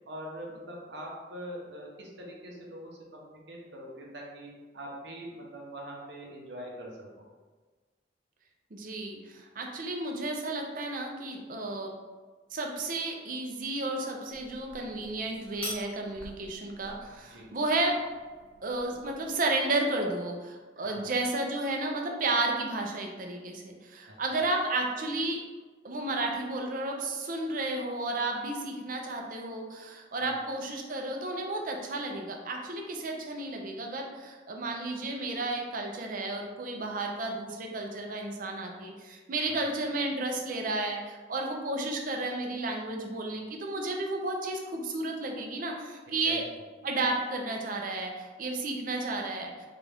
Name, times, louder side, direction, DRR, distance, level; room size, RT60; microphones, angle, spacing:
voice 1, 0.1-7.2 17.2-17.5 20.8-21.0 24.1-24.2 30.2-30.3 39.5-39.7 46.1-46.4, equal, 75° right, -2 dB, 0.8 m, -43 dB
voice 2, 8.7-11.9 12.5-18.0 18.6-25.4 25.8-46.4 46.8-49.7, right 2 dB, 50° right, 1 dB, 0.5 m, -32 dB
sound 1, 14.3-19.3, left 1 dB, 5° left, 0.7 m, -46 dB
3.8 x 2.4 x 3.4 m, 1.4 s
head